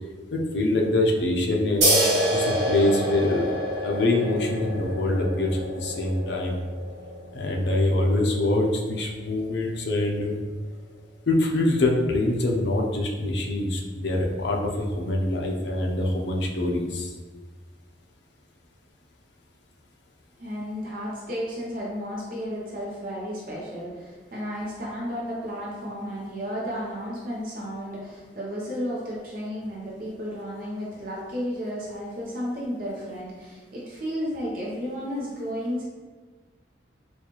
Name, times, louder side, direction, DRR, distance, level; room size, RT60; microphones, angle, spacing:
voice 1, 0.3-1.9 2.3-3.4 3.8-6.6 7.3-10.4 11.3-17.1, left 2 dB, 70° left, 0 dB, 0.6 m, -24 dB
sound 1, 1.8-8.9, right 1 dB, 80° right, 1.1 m, -27 dB
voice 2, 20.4-35.8, equal, 50° right, -5 dB, 0.7 m, -33 dB
4.2 x 2.3 x 2.9 m, 1.5 s
head